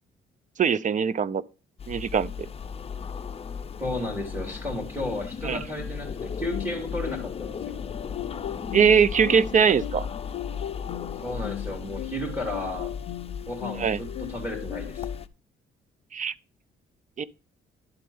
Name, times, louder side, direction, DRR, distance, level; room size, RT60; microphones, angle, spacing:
voice 1, 0.6-1.4 1.9-2.3 5.4-5.6 8.7-10.1 13.8-14.0 16.1-16.3 17.2-17.3, right 7 dB, 40° right, 0.5 m, -21 dB
sound 1, 1.8-15.3, left 6 dB, 30° left, 0.6 m, -36 dB
voice 2, 3.8-7.8 11.2-12.9 13.5-15.0, left 1 dB, 10° right, 2.9 m, -33 dB
sound 2, 6.5-15.2, left 14 dB, 75° left, 0.5 m, -38 dB
11.0 x 4.2 x 5.4 m
cardioid pair, 90°, 20 cm